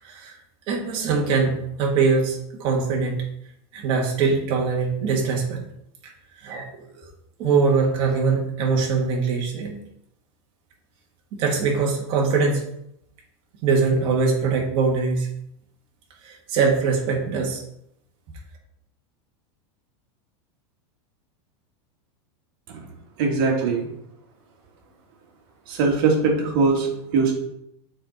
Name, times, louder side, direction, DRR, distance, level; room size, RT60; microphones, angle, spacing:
voice 1, 0.7-3.3 3.7-5.6 6.4-6.7 7.4-9.8 11.3-12.6 13.6-15.3 16.2-17.6, right 4 dB, 35° right, 0 dB, 1.8 m, -22 dB
voice 2, 23.2-23.9 25.7-26.9 27.1-27.3, right 4 dB, 50° right, 0 dB, 2.0 m, -20 dB
7.5 x 4.6 x 4.1 m, 0.78 s
supercardioid pair, 165°, 15 cm